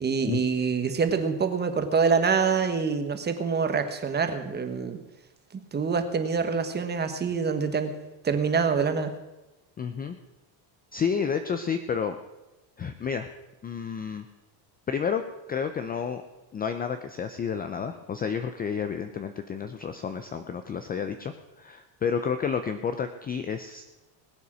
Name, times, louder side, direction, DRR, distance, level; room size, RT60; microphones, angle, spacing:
voice 1, 0.0-5.0 5.5-7.9 8.2-9.1, right 5 dB, 20° right, 8 dB, 1.3 m, -26 dB
voice 2, 9.8-10.2 10.9-12.2 12.8-13.3 13.6-14.2 14.9-16.2 16.5-23.9, left 6 dB, 20° left, 8 dB, 0.5 m, -30 dB
19.5 x 8.5 x 6.2 m, 1.0 s
cardioid pair, 150°, 50 cm